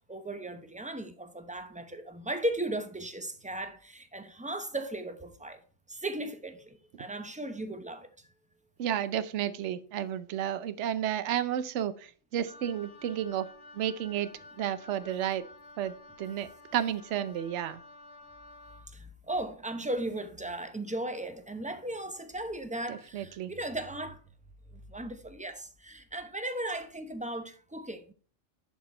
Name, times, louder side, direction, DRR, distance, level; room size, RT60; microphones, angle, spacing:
voice 1, 0.1-5.6 5.9-8.3 18.9-24.2 24.7-28.1, right 1 dB, 5° right, 0.7 m, -36 dB
voice 2, 8.8-13.5 13.7-14.3 14.6-15.4 15.8-17.8 22.9-23.5, right 10 dB, 70° right, 1.0 m, -32 dB
Wind instrument woodwind instrument, 12.4-18.9, left 2 dB, 60° left, 1.6 m, -52 dB
11.0 x 4.8 x 4.3 m
omnidirectional pair, 1.3 m